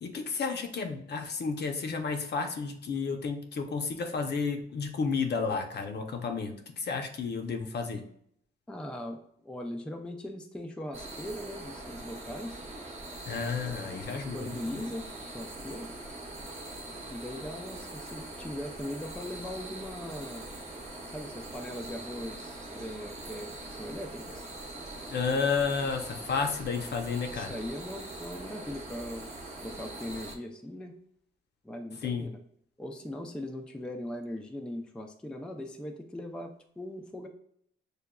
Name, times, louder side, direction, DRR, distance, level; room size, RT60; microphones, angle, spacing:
voice 1, 0.0-8.0 13.3-14.8 25.1-27.5 32.0-32.3, left 5 dB, 55° left, 5 dB, 0.6 m, -32 dB
voice 2, 8.7-12.6 13.9-15.1 15.3-15.9 17.1-20.5 21.1-24.5 27.3-29.3 29.6-31.0 31.6-32.4 32.8-37.3, left 1 dB, 5° left, 4 dB, 0.3 m, -40 dB
sound 1, 10.9-30.4, right 2 dB, 35° right, 0.8 m, -42 dB
6.4 x 2.2 x 2.2 m, 0.68 s
cardioid pair, 100°, 21 cm